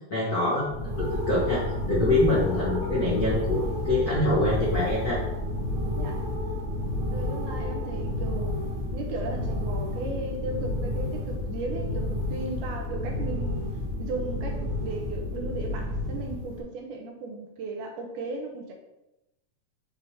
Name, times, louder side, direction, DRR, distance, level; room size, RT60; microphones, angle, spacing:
voice 1, 0.1-1.6 1.9-5.2, left 2 dB, 60° left, -7 dB, 1.0 m, -25 dB
sound 1, 0.6-16.6, left 1 dB, 60° right, 1.7 m, -30 dB
voice 2, 6.0-6.3 7.1-8.6 8.9-13.6 14.0-18.7, right 3 dB, 75° right, 2 dB, 2.4 m, -36 dB
7.7 x 3.4 x 4.2 m, 0.93 s
omnidirectional pair, 3.7 m